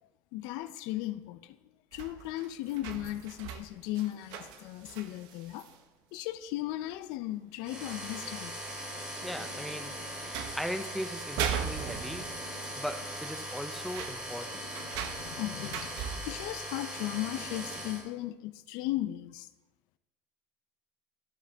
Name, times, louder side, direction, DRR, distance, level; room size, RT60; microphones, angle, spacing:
voice 1, 0.3-1.6 1.9-5.7 6.1-8.6 15.2-19.5, left 15 dB, 70° left, 0.5 m, -36 dB
sound 1, 1.9-5.8 6.9-7.0 7.3-7.4 7.9-10.0 10.3-10.8 11.2-12.6 12.9-13.0 13.3-16.5 17.6-17.7, right 8 dB, 70° right, 0.8 m, -40 dB
sound 2, 7.6-18.0, equal, 15° right, 2.8 m, -40 dB
voice 2, 9.2-12.4 12.8-14.7, equal, ahead, 0.5 m, -39 dB
14.5 x 4.9 x 3.4 m
cardioid pair, 150°, 7 cm